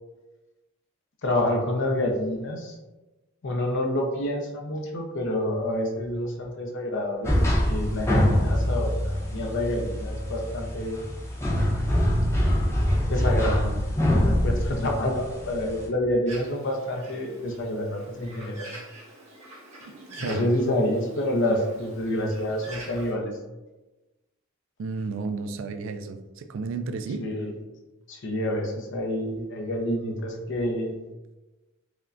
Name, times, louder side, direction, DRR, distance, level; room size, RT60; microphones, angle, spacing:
voice 1, 1.2-2.7 3.4-11.0 12.9-18.7 20.2-23.3 27.2-27.5 28.1-31.0, left 1 dB, 60° left, 1 dB, 0.6 m, -28 dB
sound 1, 7.2-15.9, equal, 15° left, 0.7 m, -24 dB
Bird, 16.3-23.1, right 1 dB, 35° right, 1.1 m, -45 dB
voice 2, 19.9-20.5 24.8-27.3, right 4 dB, 65° right, 9 dB, 0.3 m, -32 dB
4.9 x 2.1 x 2.5 m, 1.1 s
head